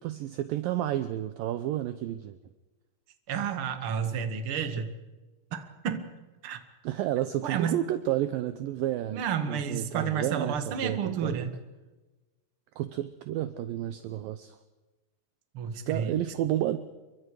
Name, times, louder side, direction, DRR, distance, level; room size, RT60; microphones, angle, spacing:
voice 1, 0.0-2.4 6.8-9.2 9.5-11.4 12.8-14.6 15.9-16.8, right 13 dB, 80° right, 11 dB, 2.0 m, -31 dB
voice 2, 3.3-4.9 5.5-6.1 6.4-6.6 7.4-7.8 9.1-11.5 15.5-16.2, right 7 dB, 50° right, 7 dB, 1.7 m, -31 dB
29.5 x 23.0 x 4.9 m, 1.2 s
omnidirectional pair, 5.0 m